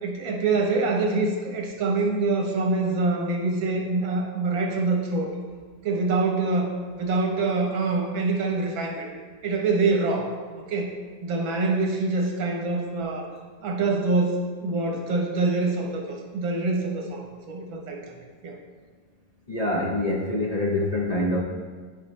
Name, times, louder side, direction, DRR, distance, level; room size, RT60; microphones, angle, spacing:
voice 1, 0.0-5.4 5.8-9.1 9.4-10.3 10.6-10.9 11.2-13.3 13.6-18.2 18.4-18.6, right 3 dB, 85° right, 1 dB, 1.9 m, -25 dB
voice 2, 19.5-21.4, left 1 dB, 65° left, -3 dB, 0.3 m, -25 dB
12.0 x 5.1 x 3.2 m, 1.5 s
omnidirectional pair, 2.1 m